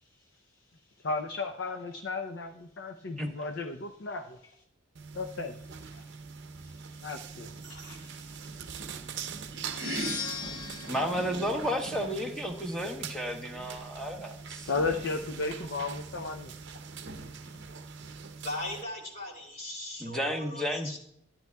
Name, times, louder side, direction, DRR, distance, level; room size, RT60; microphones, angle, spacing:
voice 1, 1.0-4.6 5.2-5.5 5.9-6.0 7.0-8.8 14.6-16.5 17.4-17.6, left 3 dB, 65° left, 7 dB, 0.6 m, -35 dB
sound 1, 4.9-18.8, right 4 dB, 60° right, 0.7 m, -41 dB
sound 2, 9.5-12.4, left 5 dB, 80° left, 1.4 m, -40 dB
voice 2, 10.9-14.7 20.0-21.0, equal, 5° left, 3 dB, 1.0 m, -32 dB
voice 3, 18.4-21.0, left 1 dB, 45° left, -2 dB, 2.9 m, -38 dB
13.5 x 10.5 x 2.3 m, 0.73 s
head